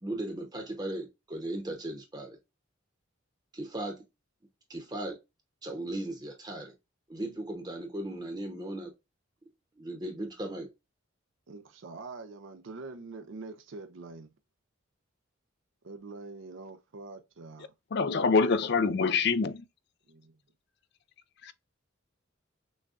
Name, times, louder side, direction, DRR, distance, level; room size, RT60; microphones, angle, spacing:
voice 1, 0.0-2.4 3.5-4.0 4.7-5.2 5.6-6.7 7.1-8.9 9.8-10.7, right 1 dB, 20° right, 0.8 m, -37 dB
voice 2, 11.5-14.3 15.8-17.7 20.1-20.4, right 3 dB, 70° right, 0.5 m, -44 dB
voice 3, 17.9-19.6 21.5-21.6, left 4 dB, 55° left, 0.4 m, -25 dB
6.2 x 2.3 x 2.4 m
head